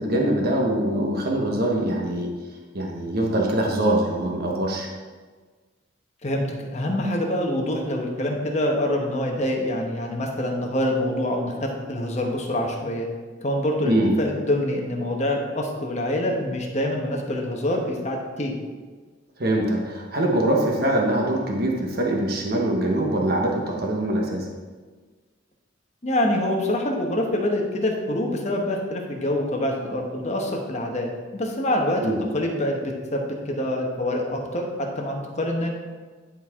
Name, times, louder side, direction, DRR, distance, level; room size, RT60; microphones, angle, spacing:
voice 1, 0.0-2.3 2.7-4.9 13.8-14.1 19.4-24.4 32.0-32.2, right 1 dB, 55° right, 0 dB, 1.1 m, -23 dB
voice 2, 6.7-13.1 13.4-18.5 26.0-32.1 32.3-35.7, left 1 dB, 40° left, 1 dB, 1.1 m, -25 dB
10.5 x 4.5 x 3.6 m, 1.4 s
head